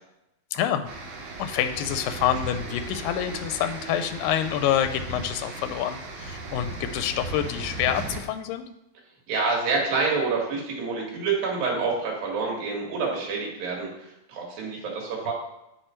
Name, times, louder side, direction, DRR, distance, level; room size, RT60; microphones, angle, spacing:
voice 1, 0.5-0.9 1.4-8.7, left 10 dB, 90° left, 9 dB, 2.3 m, -27 dB
sound 1, 0.9-8.2, right 2 dB, 65° right, 2.7 m, -36 dB
voice 2, 9.3-13.9 14.3-15.3, right 4 dB, 90° right, -2 dB, 3.6 m, -27 dB
9.1 x 5.0 x 4.4 m, 0.88 s
omnidirectional pair, 3.9 m